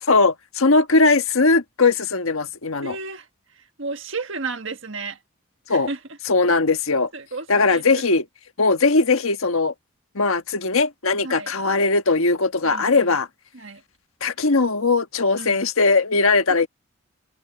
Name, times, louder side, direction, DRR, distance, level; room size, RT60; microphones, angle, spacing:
voice 1, 0.1-2.9 5.7-5.9 6.3-7.1 7.5-8.2 8.6-9.7 10.1-13.3 14.2-16.7, left 3 dB, 80° left, 1.4 m, -19 dB
voice 2, 2.8-5.2 5.7-6.2 7.1-8.0 11.2-11.5 12.6-13.2 13.5-13.8 14.4-14.5 15.4-15.6 16.5-16.6, right 3 dB, 65° right, 1.6 m, -34 dB
head